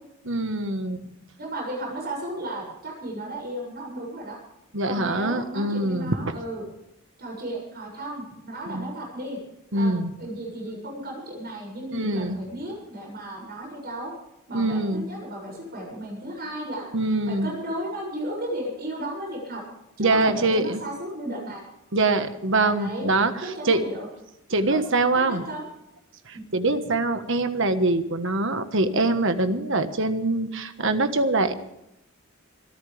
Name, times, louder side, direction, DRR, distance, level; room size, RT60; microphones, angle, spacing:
voice 1, 0.2-1.0 4.7-6.3 8.7-8.9 9.7-10.1 11.9-12.4 14.5-15.1 16.9-17.5 20.0-20.8 21.9-23.3 23.6-23.8 24.5-25.4 26.3-31.5, right 2 dB, 60° right, 9 dB, 1.5 m, -24 dB
voice 2, 1.4-4.4 4.8-6.6 7.2-9.4 9.7-14.1 14.5-16.9 17.3-19.6 20.0-21.6 22.6-23.1 23.4-24.1 24.6-24.9 25.2-25.6, right 1 dB, 45° right, -1 dB, 7.1 m, -34 dB
26.0 x 14.0 x 3.5 m, 0.85 s
head